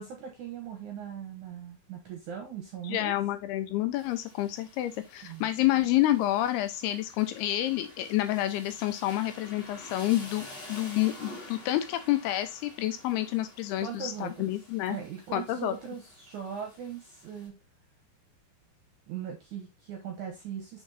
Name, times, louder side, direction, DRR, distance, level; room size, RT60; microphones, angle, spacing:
voice 1, 0.0-3.1 5.2-5.5 13.8-14.4 14.9-17.5 19.1-20.8, right 8 dB, 70° right, 3 dB, 1.9 m, -39 dB
voice 2, 2.8-15.0 15.3-15.8, left 14 dB, 80° left, 9 dB, 2.5 m, -29 dB
Rain, 3.9-17.5, left 2 dB, 35° left, 1.8 m, -49 dB
6.2 x 3.8 x 3.9 m, 0.25 s
omnidirectional pair, 4.8 m